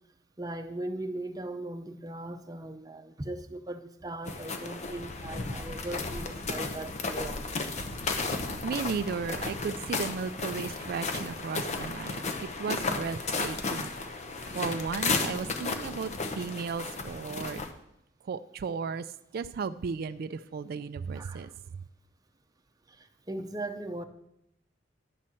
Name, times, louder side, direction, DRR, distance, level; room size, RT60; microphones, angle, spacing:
voice 1, 0.4-7.4 21.1-21.5 22.9-24.0, right 2 dB, 20° right, 0.7 m, -39 dB
sound 1, 4.3-17.7, left 3 dB, 40° left, 0.9 m, -34 dB
voice 2, 8.2-17.6 18.2-19.1 19.3-21.8, right 5 dB, 55° right, 0.3 m, -35 dB
11.0 x 4.3 x 7.6 m
head